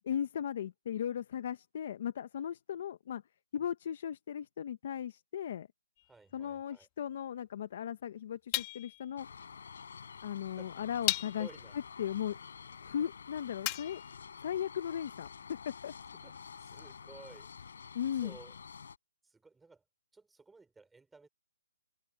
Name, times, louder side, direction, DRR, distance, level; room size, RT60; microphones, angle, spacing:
voice 1, 0.1-3.2 3.5-5.7 6.3-9.3 10.2-11.5 11.7-12.4 12.8-14.0 14.4-15.9 17.9-18.3, left 9 dB, 40° left, 1.0 m, -37 dB
sound 1, 6.0-6.1 8.5-9.1 10.2-10.3 11.1-11.6 13.6-14.2, left 22 dB, 20° left, 1.2 m, -35 dB
voice 2, 6.1-6.9 10.4-10.9 11.2-11.8 16.1-17.8 18.2-18.5 19.2-19.8 20.1-21.3, right 3 dB, 5° right, 4.4 m, -55 dB
sound 2, 9.2-19.0, left 6 dB, 65° left, 6.0 m, -49 dB
hypercardioid pair, 170°, 0 cm